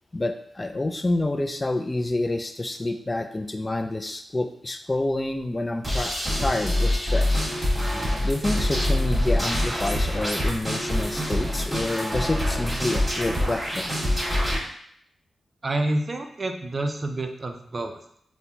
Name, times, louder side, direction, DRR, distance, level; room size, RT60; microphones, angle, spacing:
voice 1, 0.1-7.5 8.2-13.9, left 2 dB, 25° left, 7 dB, 0.3 m, -28 dB
sound 1, 5.8-14.6, left 1 dB, 10° right, 1.5 m, -25 dB
voice 2, 15.6-18.0, right 2 dB, 40° right, 4 dB, 0.4 m, -28 dB
4.2 x 2.2 x 2.7 m, 0.68 s
cardioid pair, 70°, 0 cm